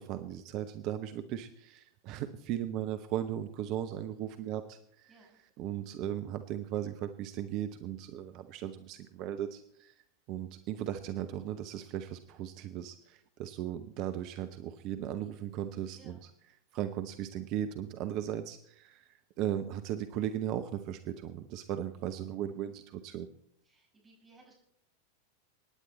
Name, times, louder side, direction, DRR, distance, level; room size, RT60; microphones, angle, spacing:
voice 1, 0.0-5.1 5.6-9.9 10.3-16.2 16.7-23.3, right 11 dB, 40° right, 9 dB, 0.9 m, -37 dB
voice 2, 15.9-16.2 21.6-22.0 23.6-24.5, right 2 dB, 15° right, -2 dB, 5.8 m, -61 dB
23.5 x 10.0 x 4.2 m, 0.69 s
figure-of-eight pair, 90°, 0 cm